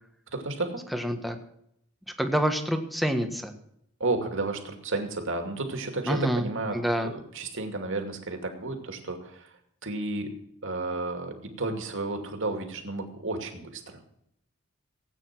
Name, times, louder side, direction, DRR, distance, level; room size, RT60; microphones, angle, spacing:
voice 1, 0.3-0.8 4.0-9.5 9.8-10.3 10.6-14.0, right 2 dB, 60° right, 4 dB, 2.6 m, -32 dB
voice 2, 0.9-1.4 2.2-3.5 6.1-6.5 6.7-7.1, equal, ahead, 6 dB, 1.4 m, -27 dB
17.5 x 9.1 x 6.1 m, 0.76 s
head